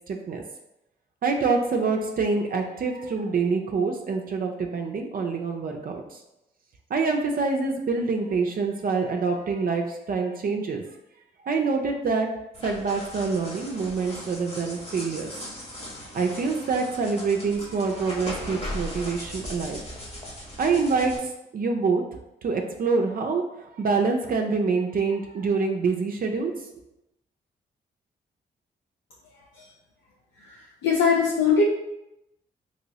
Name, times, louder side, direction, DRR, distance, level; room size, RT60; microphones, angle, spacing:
voice 1, 0.1-0.4 1.2-6.2 6.9-10.8 11.4-12.3 12.6-15.3 16.1-19.8 20.6-22.0 22.4-26.5, right 4 dB, 50° right, 2 dB, 0.5 m, -26 dB
sound 1, 12.5-21.2, left 1 dB, 35° left, 1.1 m, -38 dB
voice 2, 30.4-31.6, left 5 dB, 85° left, -3 dB, 0.5 m, -22 dB
2.9 x 2.9 x 2.7 m, 0.89 s
supercardioid pair, 55°, 19 cm